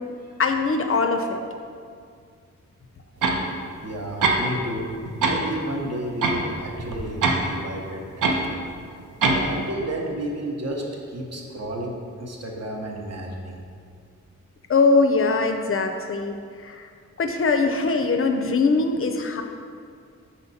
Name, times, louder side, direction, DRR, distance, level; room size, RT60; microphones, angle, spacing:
voice 1, 0.4-1.4 14.7-16.3 16.6-16.9 17.2-19.4, left 3 dB, 45° left, 5 dB, 0.4 m, -21 dB
sound 1, 3.2-3.4 4.2-4.7 5.1-5.4 6.2-7.4 8.2-8.4 9.2-9.5, right 3 dB, 85° right, 0.7 m, -22 dB
voice 2, 3.8-5.0 5.2-8.5 9.2-13.6, right 1 dB, 55° right, 0 dB, 0.9 m, -32 dB
5.7 x 4.3 x 4.1 m, 2.2 s
wide cardioid pair, 135°, 31 cm